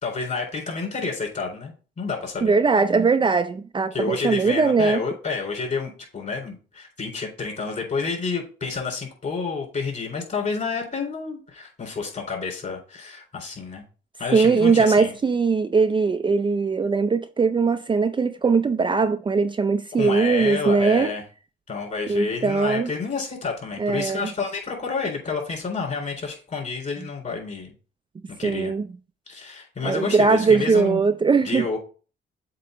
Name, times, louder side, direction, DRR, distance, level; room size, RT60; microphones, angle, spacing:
voice 1, 0.0-2.6 3.9-13.8 14.2-15.1 20.0-21.2 21.7-27.7 28.4-28.7 29.3-31.0 31.4-31.8, left 4 dB, 40° left, 3.7 m, -29 dB
voice 2, 2.4-5.0 14.3-21.1 22.1-22.9 23.8-24.3 28.4-28.8 29.8-31.7, right 4 dB, 25° right, 0.5 m, -20 dB
7.7 x 3.0 x 5.0 m
cardioid pair, 90°, 20 cm